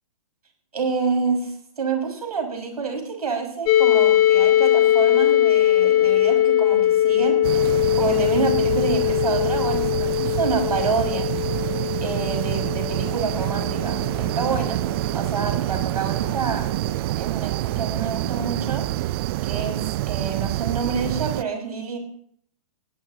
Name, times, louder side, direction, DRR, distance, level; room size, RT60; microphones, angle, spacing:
voice 1, 0.7-11.3 12.0-14.8 15.1-16.6 17.2-18.8 19.4-22.0, right 5 dB, 90° right, 3 dB, 6.0 m, -28 dB
sound 1, 3.7-15.4, left 12 dB, 30° left, 1.8 m, -21 dB
sound 2, 7.4-21.4, right 16 dB, 40° right, 0.5 m, -27 dB
21.0 x 17.0 x 3.0 m, 0.63 s
hypercardioid pair, 135°, 19 cm